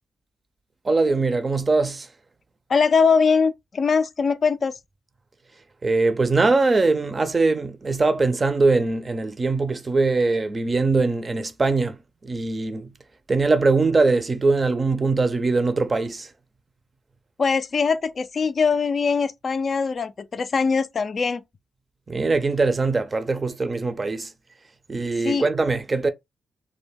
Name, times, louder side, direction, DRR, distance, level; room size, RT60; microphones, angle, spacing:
voice 1, 0.8-2.1 5.8-12.9 13.3-16.3 22.1-24.3 24.9-26.1, right 3 dB, 35° right, 0.5 m, -22 dB
voice 2, 2.7-4.7 17.4-21.4 25.2-25.5, left 5 dB, 50° left, 0.3 m, -21 dB
2.2 x 2.0 x 3.4 m
cardioid pair, 65°, 0 cm